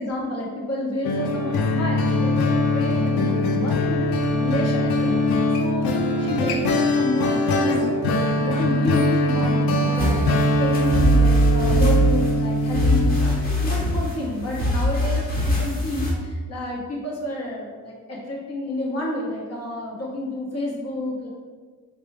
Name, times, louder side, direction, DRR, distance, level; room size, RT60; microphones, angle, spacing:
voice 1, 0.0-5.9 6.2-21.3, left 1 dB, 45° left, -4 dB, 1.2 m, -30 dB
sound 1, 1.0-13.3, left 1 dB, 90° left, 0.5 m, -22 dB
sound 2, 10.0-16.1, equal, 25° left, 1.3 m, -21 dB
3.3 x 2.5 x 3.2 m, 1.5 s
cardioid pair, 80°, 34 cm